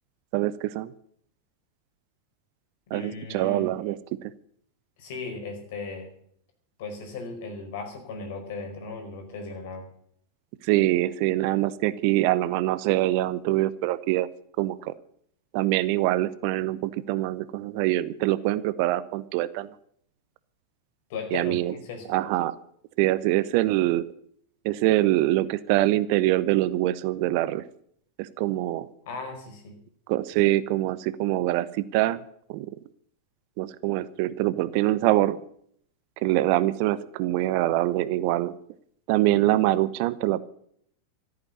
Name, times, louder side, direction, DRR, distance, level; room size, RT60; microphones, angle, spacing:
voice 1, 0.3-0.9 2.9-4.0 10.6-14.3 14.6-14.9 15.5-19.7 21.3-21.7 22.1-22.6 23.0-24.0 24.6-27.6 28.2-28.9 30.1-32.2 32.5-32.7 33.6-35.4 36.2-38.5 39.1-40.4, right 16 dB, 45° right, 17 dB, 0.8 m, -24 dB
voice 2, 2.9-3.7 5.0-6.1 6.8-9.9 21.1-22.1 29.0-29.7, left 4 dB, 50° left, 4 dB, 5.0 m, -37 dB
14.5 x 9.0 x 9.6 m, 0.65 s
figure-of-eight pair, 90°, 0 cm